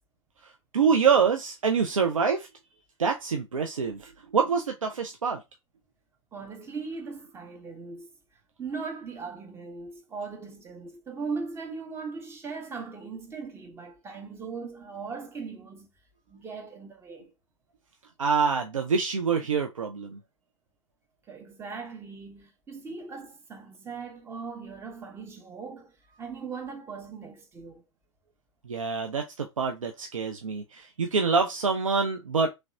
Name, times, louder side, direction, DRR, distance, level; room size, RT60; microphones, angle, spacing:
voice 1, 0.4-2.5 3.0-5.4 18.2-20.2 28.7-32.5, right 5 dB, 80° right, 0.4 m, -26 dB
voice 2, 6.3-8.1 8.6-15.9 16.3-17.3 21.3-27.8, right 4 dB, 15° right, 0.7 m, -39 dB
3.1 x 2.9 x 2.3 m
figure-of-eight pair, 100°, 17 cm